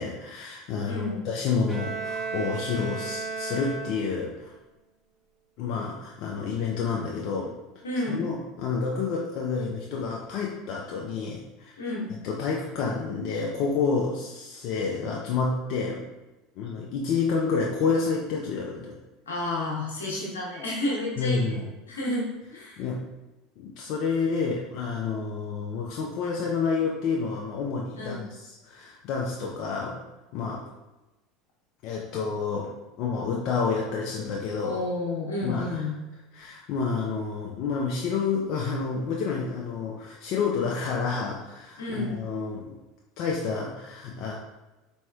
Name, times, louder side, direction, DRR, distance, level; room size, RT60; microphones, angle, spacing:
voice 1, 0.0-4.5 5.6-7.5 8.1-11.8 12.2-16.0 16.6-19.0 21.2-21.7 22.8-23.0 23.6-30.0 30.3-30.6 31.8-32.7 33.0-34.8 35.4-35.9 36.3-42.8 43.2-44.3, left 5 dB, 60° left, -2 dB, 0.6 m, -29 dB
voice 2, 0.8-1.2 7.8-8.3 11.8-12.2 19.3-21.6 21.9-22.8 27.9-28.3 34.6-36.0 41.8-42.1, left 2 dB, 85° left, -4 dB, 1.2 m, -31 dB
Bowed string instrument, 1.7-4.4, right 4 dB, 20° right, 1.0 m, -34 dB
4.2 x 4.1 x 2.3 m, 1.1 s
hypercardioid pair, 80°, 0 cm